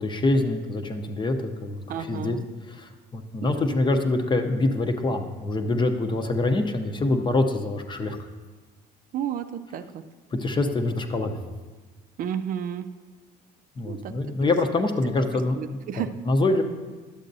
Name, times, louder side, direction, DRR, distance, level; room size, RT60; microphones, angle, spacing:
voice 1, 0.0-2.4 2.6-8.3 10.3-11.4 13.8-16.6, left 2 dB, 30° left, 6 dB, 0.7 m, -25 dB
voice 2, 1.9-2.4 3.5-3.6 9.1-10.0 12.2-12.9 13.8-14.1 15.3-16.1, right 9 dB, 55° right, 9 dB, 0.4 m, -32 dB
11.5 x 7.5 x 2.7 m, 1.3 s
cardioid pair, 110°, 17 cm